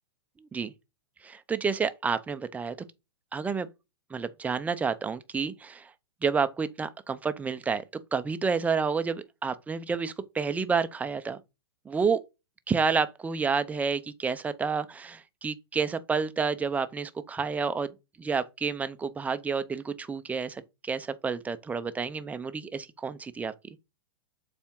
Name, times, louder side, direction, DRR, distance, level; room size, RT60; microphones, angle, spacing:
voice 1, 1.2-2.7 3.3-3.7 4.1-5.9 6.2-7.8 8.1-11.4 11.9-12.2 12.7-17.9 18.2-23.5, right 5 dB, 10° right, 0.6 m, -29 dB
7.1 x 4.4 x 3.7 m
hypercardioid pair, 120°, 14 cm